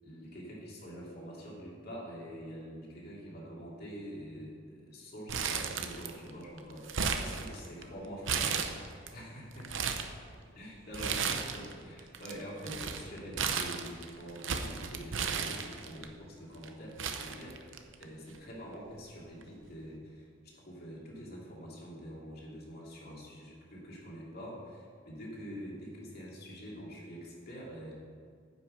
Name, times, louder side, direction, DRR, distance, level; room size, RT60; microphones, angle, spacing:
voice 1, 0.0-9.7 10.5-27.9, equal, 55° left, -4 dB, 2.7 m, -46 dB
Crumpling crinkling, 5.3-6.3 6.6-7.8 8.2-9.1 9.5-10.1 10.9-11.7 12.0-16.0 16.6-16.7 17.0-18.0 18.3-18.4 19.4-19.7, right 6 dB, 75° right, 0.7 m, -34 dB
9.7 x 5.9 x 6.5 m, 2.2 s
head